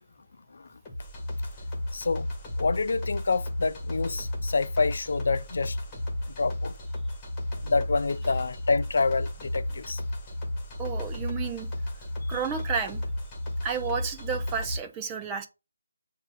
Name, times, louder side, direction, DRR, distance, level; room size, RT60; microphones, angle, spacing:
sound 1, 0.9-14.8, left 1 dB, 15° left, 1.9 m, -33 dB
voice 1, 1.9-2.3 2.6-5.8 6.4-6.7 7.6-10.0, left 4 dB, 55° left, 0.3 m, -27 dB
voice 2, 10.8-11.7 12.3-13.0 13.6-15.5, right 6 dB, 15° right, 0.7 m, -31 dB
7.8 x 2.7 x 5.5 m
figure-of-eight pair, 155°, 0 cm